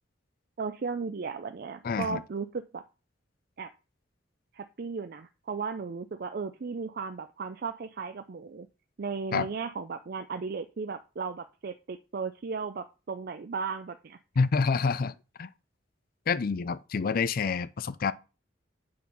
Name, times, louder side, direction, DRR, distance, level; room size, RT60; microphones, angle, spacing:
voice 1, 0.6-2.8 3.6-3.7 4.5-8.7 9.0-14.2, right 5 dB, 55° right, 0.5 m, -35 dB
voice 2, 1.8-2.2 9.3-9.5 14.4-15.5 16.3-18.1, left 5 dB, 50° left, 0.4 m, -28 dB
8.5 x 4.4 x 5.4 m
head